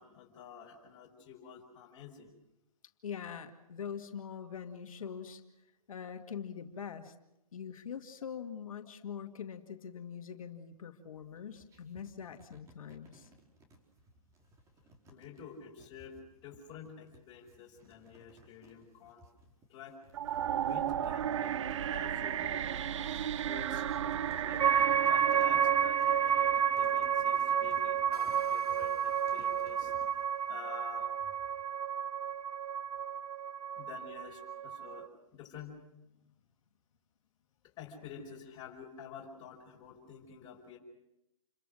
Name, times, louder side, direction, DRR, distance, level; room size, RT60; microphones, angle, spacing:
voice 1, 0.0-2.3 15.1-19.2 19.7-20.0 20.5-24.7 25.0-29.9 30.5-31.3 33.8-35.8 37.6-40.8, left 6 dB, 25° left, -3 dB, 5.2 m, -50 dB
voice 2, 3.0-5.4 5.9-7.1 7.5-13.3, left 7 dB, 65° left, 6 dB, 2.2 m, -43 dB
sound 1, 11.1-30.3, right 1 dB, 15° right, 4.4 m, -60 dB
sound 2, 20.1-27.2, right 10 dB, 55° right, 0.9 m, -35 dB
sound 3, 24.6-35.1, right 8 dB, 80° right, 1.2 m, -30 dB
29.0 x 23.0 x 6.4 m, 0.90 s
hypercardioid pair, 140°, 19 cm